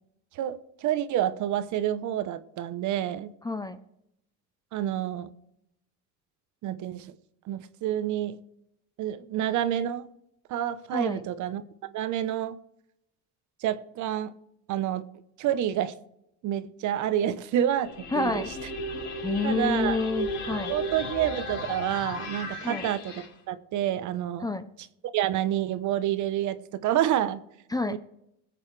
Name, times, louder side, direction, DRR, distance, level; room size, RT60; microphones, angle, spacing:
voice 1, 0.3-3.3 4.7-5.3 6.6-7.1 7.5-8.4 9.0-10.1 10.5-11.6 11.9-12.6 13.6-14.3 14.7-15.1 15.4-15.9 16.4-17.9 18.2-18.4 19.4-20.0 20.7-23.1 23.5-24.5 25.1-26.6 26.8-27.4 27.9-28.0, right 11 dB, 55° right, 1.0 m, -28 dB
voice 2, 3.4-3.8 10.9-11.2 18.1-18.5 19.2-20.7 22.6-22.9 24.4-24.7 27.7-28.0, left 3 dB, 10° left, 0.7 m, -28 dB
sound 1, 17.8-23.3, equal, 80° left, 5.0 m, -34 dB
20.5 x 8.2 x 3.3 m
cardioid pair, 115°, 35 cm